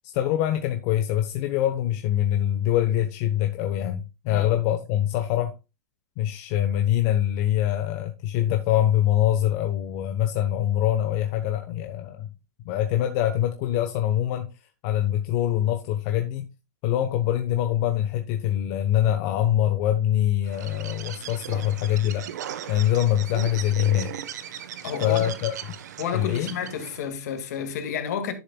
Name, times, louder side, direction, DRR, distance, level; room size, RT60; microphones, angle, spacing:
voice 1, 0.0-5.5 6.2-12.3 12.6-14.5 14.8-16.5 16.8-22.3 22.7-24.1 25.0-25.6 26.1-26.5, left 11 dB, 50° left, 1.0 m, -24 dB
Bird, 20.5-27.1, right 10 dB, 75° right, 1.1 m, -37 dB
voice 2, 24.8-25.3 26.0-28.3, left 7 dB, 70° left, 2.0 m, -31 dB
11.5 x 6.8 x 2.2 m
hypercardioid pair, 125°, 9 cm